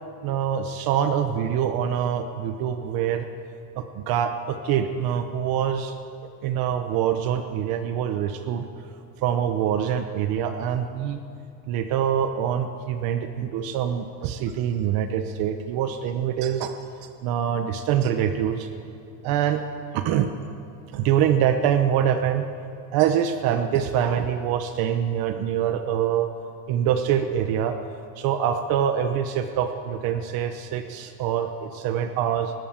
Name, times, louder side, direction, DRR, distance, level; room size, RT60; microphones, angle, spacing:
voice 1, 0.2-3.3 3.8-5.9 6.4-8.6 9.2-11.2 11.7-16.7 17.0-18.7 19.2-19.6 19.9-20.3 20.9-22.4 22.9-26.3 26.7-27.8 28.2-32.5, right 9 dB, 65° right, 8 dB, 1.1 m, -25 dB
21.0 x 17.0 x 7.4 m, 2.6 s
cardioid pair, 165°, 39 cm